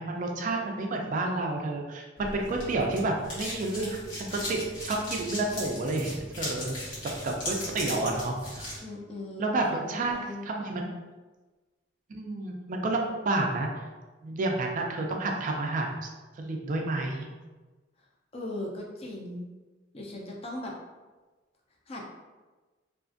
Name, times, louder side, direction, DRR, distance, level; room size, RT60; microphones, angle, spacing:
voice 1, 0.0-6.8 7.2-8.8 9.4-10.1 10.4-10.9 12.1-13.7 14.2-16.1 16.4-17.3, right 2 dB, 40° right, 1 dB, 0.3 m, -30 dB
sound 1, 2.2-8.8, left 1 dB, 85° left, 1.1 m, -38 dB
voice 2, 8.8-10.5 18.3-19.5 19.9-20.7 21.9-22.0, left 1 dB, 30° left, -1 dB, 0.4 m, -38 dB
2.4 x 2.3 x 2.4 m, 1.3 s
head